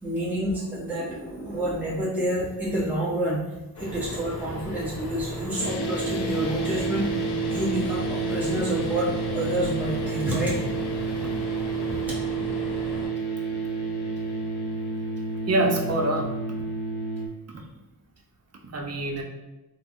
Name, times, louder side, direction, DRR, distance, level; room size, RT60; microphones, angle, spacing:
voice 1, 0.0-3.4 3.8-10.6, right 1 dB, 5° right, -8 dB, 1.0 m, -28 dB
sound 1, 3.7-13.1, equal, 45° left, 0.7 m, -36 dB
sound 2, 5.6-17.3, right 3 dB, 85° left, 0.5 m, -30 dB
voice 2, 15.5-16.3 17.5-17.6 18.6-19.2, right 2 dB, 40° right, 1 dB, 0.5 m, -25 dB
3.3 x 2.1 x 2.5 m, 1.0 s
cardioid pair, 65°, 39 cm